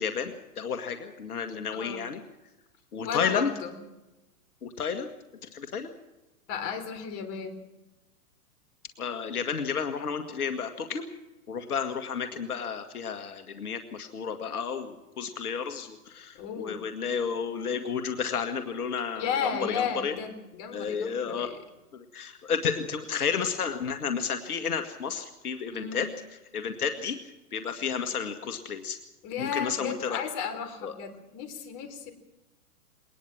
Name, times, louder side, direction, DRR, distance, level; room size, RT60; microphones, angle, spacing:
voice 1, 0.0-2.2 2.9-3.5 4.6-5.1 5.5-5.9 9.0-11.0 11.5-20.1 20.7-21.5 21.9-26.1 26.5-27.2 27.5-29.0 29.4-30.2 30.8-30.9, left 6 dB, 80° left, 7 dB, 2.0 m, -31 dB
voice 2, 1.7-2.1 3.0-3.8 6.5-7.6 16.3-16.8 19.1-21.6 25.7-26.1 29.2-32.1, left 7 dB, 35° left, 8 dB, 3.9 m, -34 dB
22.0 x 19.5 x 6.0 m, 1.0 s
hypercardioid pair, 125°, 45 cm